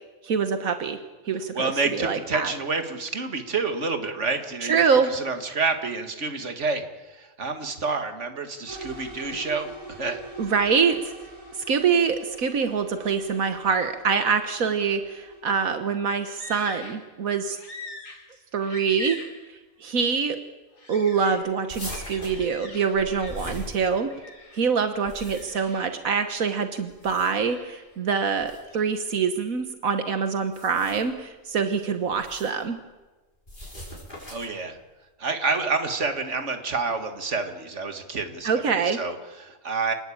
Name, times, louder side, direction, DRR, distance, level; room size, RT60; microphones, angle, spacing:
voice 1, 0.2-1.0 1.2-2.5 4.6-5.1 9.3-9.4 10.4-11.1 11.5-17.6 18.5-19.2 19.5-20.4 20.9-24.1 24.5-32.8 38.4-39.0, right 6 dB, 85° right, 7 dB, 1.7 m, -25 dB
voice 2, 1.5-10.2 34.3-34.8 35.2-38.5 39.0-39.9, right 4 dB, 60° right, 6 dB, 2.3 m, -28 dB
sound 1, 8.7-15.4, right 2 dB, 25° right, 5.5 m, -43 dB
sound 2, 16.3-17.1 17.5-19.5 19.9-20.1 20.8-23.7 24.1-24.8 25.1-26.0 27.0-28.0 28.4-29.0, left 1 dB, 70° left, 3.7 m, -43 dB
Paper Manipulation On Glass, 21.7-24.3 24.9-25.7 26.9-27.5 28.4-28.6 30.4-31.2 32.1-32.6 33.5-34.6, left 1 dB, 35° left, 6.3 m, -40 dB
27.5 x 19.5 x 8.7 m, 1.2 s
omnidirectional pair, 1.4 m